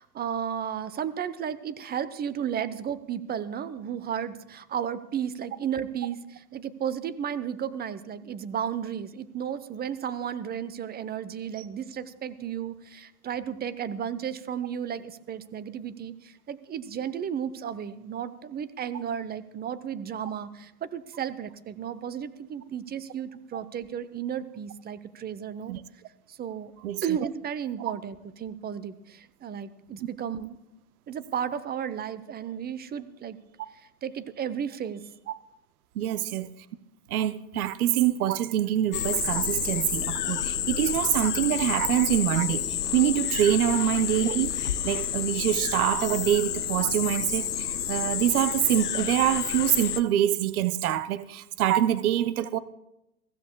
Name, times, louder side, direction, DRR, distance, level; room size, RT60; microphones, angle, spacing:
voice 1, 0.0-25.8 26.3-26.7 27.0-30.6 31.1-33.4 33.7-35.0 36.0-36.2 43.6-43.8, right 8 dB, 20° right, 0.8 m, -33 dB
voice 2, 36.0-36.5 37.1-44.6 44.8-52.6, right 12 dB, 70° right, 0.8 m, -25 dB
sound 1, 38.9-50.0, left 10 dB, 90° left, 0.6 m, -30 dB
22.5 x 15.5 x 2.3 m
figure-of-eight pair, 85°, 45 cm